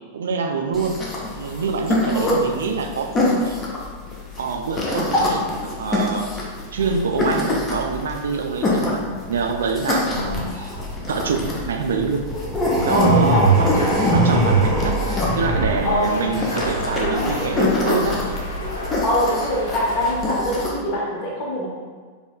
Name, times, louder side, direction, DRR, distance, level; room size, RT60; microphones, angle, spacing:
voice 1, 0.1-1.0 1.3-3.6 4.4-6.3 6.7-10.8 11.1-12.2 12.9-13.7 14.1-15.0 15.4-18.2, right 5 dB, 65° right, 5 dB, 0.3 m, -25 dB
sound 1, 0.7-20.7, left 2 dB, 25° left, 0.7 m, -26 dB
sound 2, 10.1-19.1, right 2 dB, 20° right, 0.8 m, -22 dB
voice 2, 12.9-13.6 15.8-16.1 17.0-17.7 19.0-21.7, equal, 45° left, -4 dB, 1.0 m, -23 dB
sound 3, 13.4-20.2, left 1 dB, 80° left, 0.4 m, -33 dB
4.2 x 2.8 x 2.3 m, 1.5 s
figure-of-eight pair, 90°, 0 cm